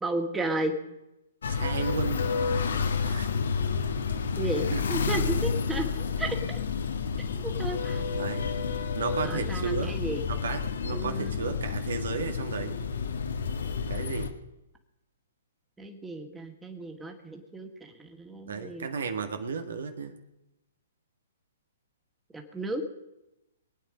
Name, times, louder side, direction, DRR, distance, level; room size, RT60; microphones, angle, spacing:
voice 1, 0.0-0.8 4.4-6.6 7.4-8.0 9.2-10.2 10.9-11.4 15.8-18.9 22.3-22.9, right 2 dB, 10° right, 3 dB, 2.0 m, -33 dB
sound 1, 1.4-14.3, left 5 dB, 70° left, 1.5 m, -30 dB
voice 2, 1.5-2.3 3.0-3.3 4.7-4.8 8.1-8.5 8.9-10.0 10.3-12.8 13.9-14.3 18.5-20.2, right 5 dB, 70° right, 7 dB, 1.7 m, -33 dB
23.5 x 9.1 x 5.1 m, 0.90 s
hypercardioid pair, 125°, 0 cm